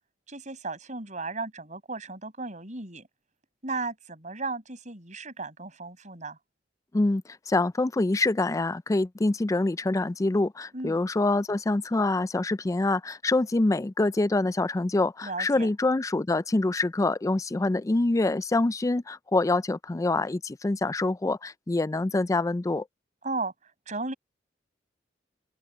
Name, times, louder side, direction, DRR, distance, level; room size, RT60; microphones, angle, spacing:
voice 1, 0.3-3.1 3.6-6.4 10.7-11.0 15.2-15.7 23.2-23.5 23.9-24.1, right 3 dB, 45° right, 7.5 m, -35 dB
voice 2, 6.9-22.8, left 2 dB, 20° left, 0.4 m, -25 dB
open air
head